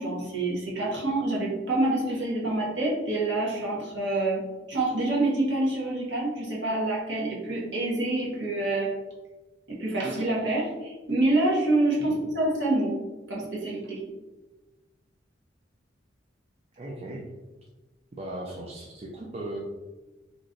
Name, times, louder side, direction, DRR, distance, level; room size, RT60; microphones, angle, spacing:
voice 1, 0.0-4.4 4.7-8.9 9.7-13.0 13.3-14.0, right 2 dB, 70° right, -5 dB, 1.2 m, -27 dB
voice 2, 16.8-17.3 18.1-19.6, right 1 dB, 35° right, -2 dB, 0.4 m, -37 dB
3.0 x 2.5 x 3.8 m, 1.1 s
head